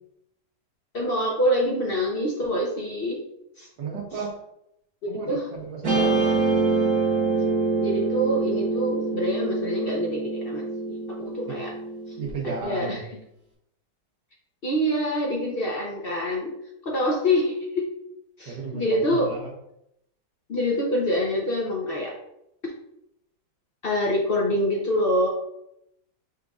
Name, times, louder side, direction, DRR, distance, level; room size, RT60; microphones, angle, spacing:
voice 1, 0.9-3.2 3.6-3.7 5.0-5.4 7.8-10.6 11.3-11.7 12.4-13.0 14.6-16.6 16.8-17.9 18.4-19.3 20.5-22.1 23.8-25.3, equal, 55° left, -2 dB, 0.6 m, -25 dB
voice 2, 3.8-4.4 5.1-6.4 11.5-11.6 12.2-13.0 18.5-19.5, right 4 dB, 85° right, 0 dB, 1.7 m, -33 dB
Guitar, 5.8-12.3, right 3 dB, 45° right, 1.6 m, -25 dB
5.0 x 4.4 x 2.4 m, 0.80 s
omnidirectional pair, 1.9 m